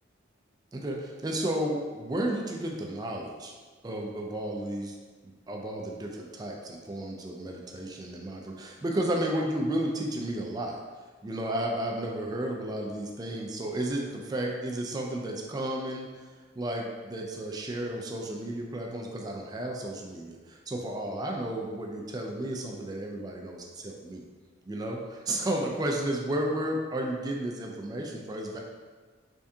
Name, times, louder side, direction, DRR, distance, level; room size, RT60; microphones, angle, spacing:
voice 1, 0.7-3.5 3.8-5.0 5.2-10.8 11.2-16.1 16.6-24.2 24.7-28.6, right 1 dB, 20° right, 0 dB, 0.3 m, -32 dB
3.5 x 3.4 x 2.7 m, 1.4 s
head